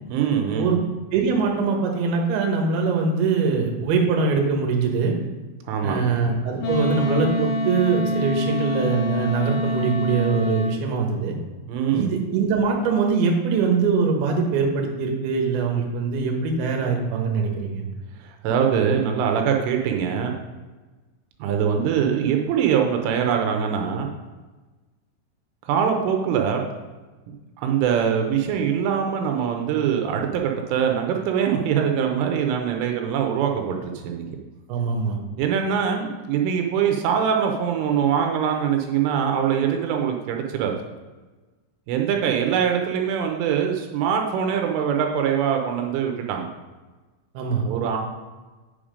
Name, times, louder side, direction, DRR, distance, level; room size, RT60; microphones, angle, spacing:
voice 1, 0.1-0.8 5.7-6.1 11.7-12.1 18.2-20.3 21.4-24.1 25.7-26.6 27.3-34.3 35.4-40.7 41.9-46.5 47.6-48.0, right 8 dB, 80° right, 3 dB, 3.3 m, -23 dB
voice 2, 1.1-5.1 5.8-11.4 11.9-17.9 34.7-35.2 47.3-47.6, right 5 dB, 65° right, 1 dB, 2.8 m, -23 dB
Wind instrument woodwind instrument, 6.6-10.8, equal, 60° left, 2.1 m, -25 dB
8.8 x 5.8 x 5.1 m, 1.3 s
omnidirectional pair, 5.7 m